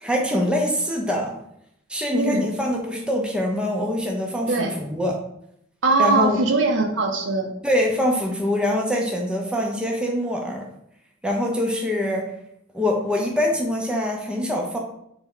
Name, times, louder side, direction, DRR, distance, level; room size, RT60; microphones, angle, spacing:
voice 1, 0.0-1.3 1.9-5.2 6.0-6.4 7.6-10.6 11.2-12.3 12.7-14.8, left 1 dB, 5° right, 0 dB, 0.4 m, -24 dB
voice 2, 2.1-2.5 4.5-4.8 5.8-7.5, right 3 dB, 65° right, 4 dB, 0.5 m, -21 dB
3.3 x 2.0 x 3.6 m, 0.75 s
head